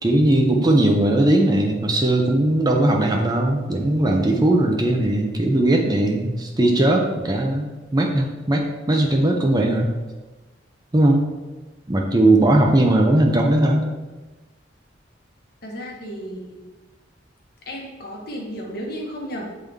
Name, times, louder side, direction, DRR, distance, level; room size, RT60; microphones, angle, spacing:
voice 1, 0.0-9.9 10.9-11.3 11.9-13.9, right 1 dB, 20° right, 2 dB, 0.5 m, -19 dB
voice 2, 15.6-16.7 17.7-19.4, equal, 50° left, -1 dB, 1.2 m, -33 dB
7.6 x 3.7 x 3.4 m, 1.2 s
head